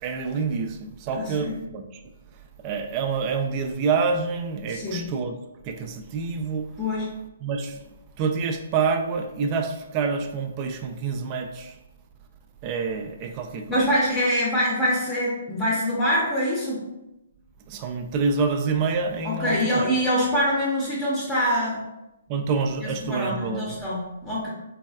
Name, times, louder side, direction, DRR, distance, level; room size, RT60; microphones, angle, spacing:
voice 1, 0.0-1.8 2.6-5.4 5.6-6.7 7.4-7.8 8.2-11.7 12.6-13.8 17.7-19.9 22.3-23.8, right 5 dB, 35° right, 5 dB, 0.3 m, -27 dB
voice 2, 1.2-1.6 4.7-5.0 6.8-7.1 13.7-16.8 19.2-21.8 22.8-24.5, equal, 20° left, -6 dB, 0.7 m, -24 dB
3.3 x 2.2 x 2.3 m, 0.94 s
figure-of-eight pair, 130°, 0 cm